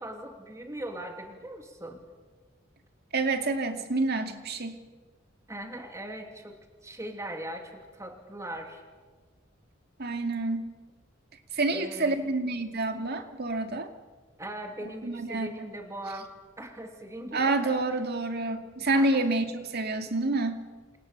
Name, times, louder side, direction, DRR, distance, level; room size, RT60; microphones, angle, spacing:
voice 1, 0.0-2.0 5.5-6.5 6.8-8.8 11.7-12.2 14.4-16.3 16.6-18.0 18.9-19.3, right 1 dB, 15° right, 3 dB, 2.9 m, -40 dB
voice 2, 3.1-4.8 10.0-10.7 11.5-13.9 15.0-15.5 17.3-20.6, right 2 dB, 55° right, 6 dB, 2.3 m, -28 dB
28.0 x 28.0 x 6.8 m, 1.4 s
head